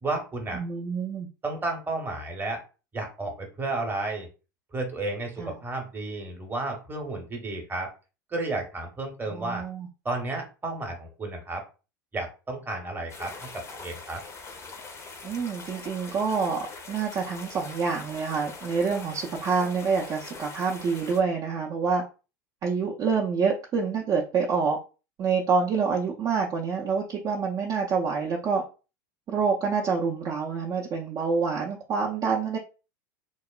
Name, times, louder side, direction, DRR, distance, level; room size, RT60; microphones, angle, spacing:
voice 1, 0.0-0.6 1.4-2.6 2.9-4.3 4.7-7.9 8.3-9.6 10.0-11.6 12.1-14.2, right 2 dB, 20° right, 3 dB, 0.8 m, -32 dB
voice 2, 0.5-1.3 5.4-5.5 9.3-9.9 15.2-22.0 22.6-24.8 25.2-28.6 29.3-32.6, right 5 dB, 35° right, -1 dB, 0.4 m, -27 dB
sound 1, 13.1-21.2, left 4 dB, 25° left, 0.6 m, -43 dB
2.9 x 2.0 x 2.3 m, 0.32 s
hypercardioid pair, 85°, 11 cm